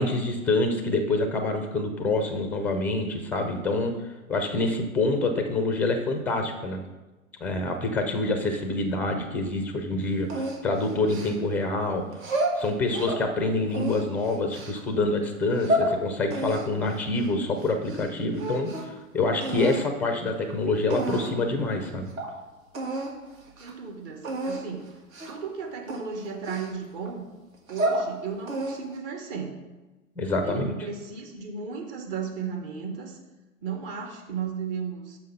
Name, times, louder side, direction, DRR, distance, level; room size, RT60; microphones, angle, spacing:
voice 1, 0.0-3.9 4.3-6.8 7.4-22.1 30.2-30.8, left 2 dB, 5° left, 6 dB, 0.4 m, -26 dB
sound 1, 10.3-11.6 12.1-13.2 13.7-14.8 15.4-15.9 16.3-18.1 18.3-19.0 19.4-19.8 20.5-20.6 20.9-21.4 21.8-21.9 22.2-22.3 22.7-23.1 23.5-23.7 24.2-24.6 25.1-25.4 25.9-27.1 27.5-28.1 28.5-29.0, right 1 dB, 70° right, 1.8 m, -30 dB
voice 2, 23.6-24.9 25.3-27.2 27.7-29.6 30.4-33.2 33.6-35.2, right 6 dB, 40° right, 3 dB, 1.5 m, -35 dB
6.0 x 5.6 x 5.4 m, 1.1 s
hypercardioid pair, 115°, 42 cm